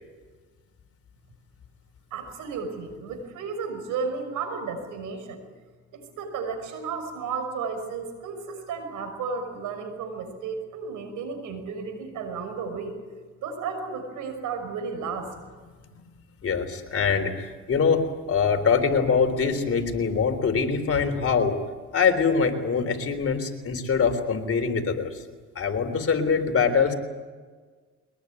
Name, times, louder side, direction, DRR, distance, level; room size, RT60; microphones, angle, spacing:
voice 1, 2.1-5.4 5.9-13.0 13.4-15.3, right 5 dB, 90° right, 7 dB, 5.9 m, -33 dB
voice 2, 16.4-21.5 21.9-25.1 25.6-26.9, left 5 dB, 50° left, 6 dB, 3.7 m, -23 dB
23.0 x 20.5 x 9.8 m, 1.4 s
cardioid pair, 90°, 30 cm